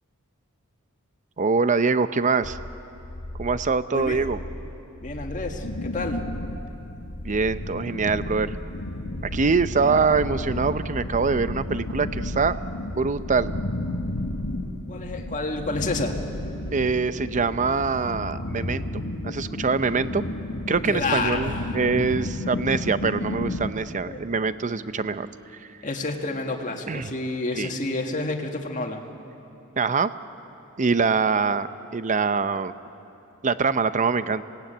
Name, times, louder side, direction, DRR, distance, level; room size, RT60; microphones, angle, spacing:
voice 1, 1.4-2.6 3.4-4.4 7.2-8.6 9.3-12.6 13.0-13.5 16.7-18.9 19.2-20.2 20.7-25.3 25.5-25.6 26.9-27.1 27.5-27.7 29.8-30.1 30.8-32.7 33.4-34.4, right 4 dB, 35° right, 13 dB, 0.6 m, -24 dB
sound 1, 2.4-15.2, left 1 dB, 65° left, 1.2 m, -38 dB
voice 2, 3.9-4.3 5.0-6.2 14.9-16.1 20.9-21.7 24.1-24.2 25.8-29.0, left 2 dB, 35° left, 2 dB, 2.0 m, -29 dB
sound 2, 5.6-23.7, left 1 dB, 85° left, 1.5 m, -32 dB
sound 3, 15.5-27.6, right 1 dB, 20° right, 5.9 m, -48 dB
27.5 x 18.5 x 9.1 m, 2.9 s
head